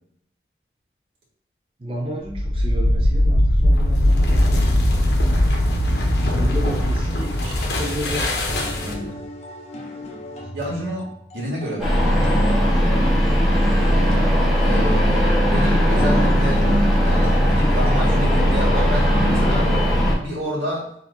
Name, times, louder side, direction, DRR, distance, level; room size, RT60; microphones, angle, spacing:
voice 1, 1.8-5.0 6.3-8.3 8.8-9.2, equal, 30° right, 0 dB, 0.5 m, -32 dB
sound 1, 2.2-9.1, left 1 dB, 75° left, 0.9 m, -19 dB
sound 2, 8.0-18.2, equal, 35° left, 0.7 m, -35 dB
voice 2, 10.5-11.1 11.3-12.2 14.6-16.7 17.0-19.7 20.2-20.9, equal, 90° right, -4 dB, 1.7 m, -28 dB
sound 3, 11.8-20.1, equal, ahead, 1.3 m, -18 dB
3.8 x 3.0 x 4.0 m, 0.73 s
head